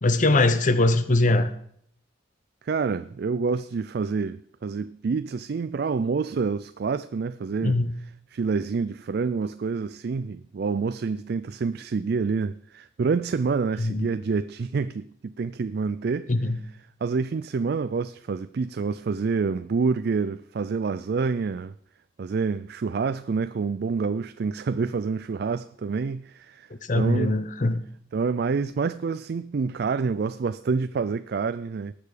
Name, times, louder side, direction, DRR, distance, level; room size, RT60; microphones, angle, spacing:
voice 1, 0.0-1.5 7.6-7.9 13.8-14.1 16.3-16.6 26.7-27.8, left 2 dB, 40° left, 0.7 m, -22 dB
voice 2, 2.6-7.8 8.3-16.3 17.0-21.7 22.2-26.7 26.9-27.4 28.1-31.9, right 4 dB, 55° right, 0.4 m, -27 dB
19.0 x 6.8 x 5.0 m
head